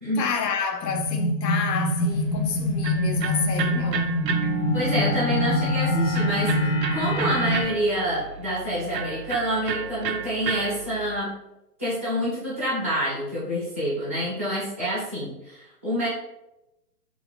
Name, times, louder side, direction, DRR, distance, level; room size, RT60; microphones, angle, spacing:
voice 1, 0.2-4.3, left 6 dB, 80° left, 0.6 m, -29 dB
sound 1, 0.8-7.6, left 1 dB, 40° left, 0.6 m, -24 dB
Electric guitar, 2.1-11.2, right 6 dB, 90° right, 0.6 m, -34 dB
voice 2, 4.7-11.3 11.8-16.1, equal, 10° right, 0.4 m, -27 dB
2.8 x 2.8 x 3.3 m
hypercardioid pair, 130°, 49 cm